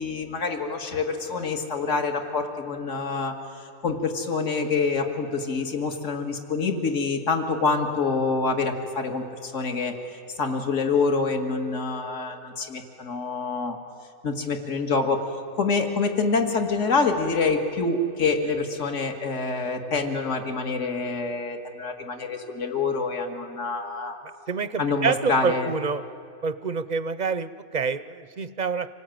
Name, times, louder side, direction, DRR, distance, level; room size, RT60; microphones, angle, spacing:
voice 1, 0.0-3.4 3.8-10.0 10.4-13.8 14.2-15.2 15.5-24.2 24.8-25.7, left 4 dB, 65° left, 5 dB, 2.0 m, -26 dB
voice 2, 24.5-26.0 26.4-28.9, right 5 dB, 45° right, 14 dB, 0.5 m, -27 dB
26.5 x 18.5 x 9.1 m, 2.6 s
omnidirectional pair, 1.4 m